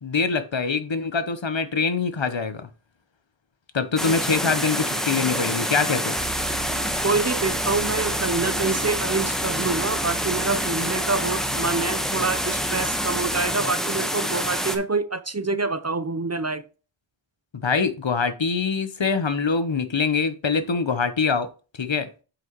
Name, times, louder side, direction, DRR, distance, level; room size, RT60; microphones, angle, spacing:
voice 1, 0.0-2.7 3.7-6.2 17.5-21.5 21.8-22.1, left 5 dB, 65° left, 1.0 m, -24 dB
sound 1, 4.0-14.8, equal, ahead, 1.2 m, -27 dB
sound 2, 6.2-13.5, right 5 dB, 60° right, 3.2 m, -40 dB
voice 2, 7.0-16.6, right 3 dB, 35° right, 0.6 m, -26 dB
8.1 x 5.9 x 3.0 m
wide cardioid pair, 50°, 50 cm